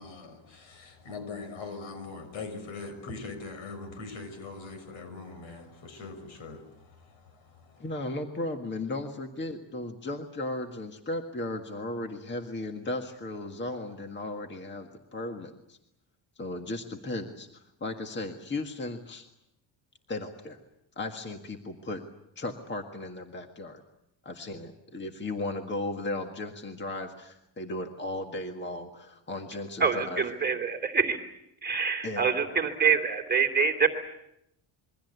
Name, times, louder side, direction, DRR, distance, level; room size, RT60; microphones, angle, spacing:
voice 1, 0.0-7.9, left 3 dB, 80° left, 6.1 m, -42 dB
voice 2, 7.8-15.8 16.4-19.3 20.1-20.6 21.0-22.0 22.4-23.8 24.2-30.6 32.0-32.7, left 2 dB, 25° left, 1.8 m, -36 dB
voice 3, 29.8-31.2 31.6-33.9, right 6 dB, 20° right, 2.7 m, -25 dB
27.5 x 23.0 x 8.1 m
cardioid pair, 160°, 47 cm